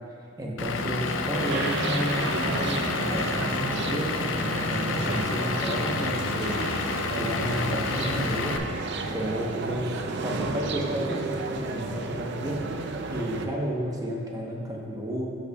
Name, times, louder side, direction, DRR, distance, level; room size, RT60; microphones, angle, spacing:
voice 1, 0.4-6.6 7.1-8.6 9.1-12.6 13.1-15.3, equal, 15° right, -2 dB, 0.9 m, -32 dB
Vehicle / Engine, 0.6-8.6, left 4 dB, 60° left, 0.5 m, -29 dB
sound 1, 1.3-13.5, right 3 dB, 55° right, 0.5 m, -32 dB
14.0 x 5.5 x 2.3 m, 2.8 s
head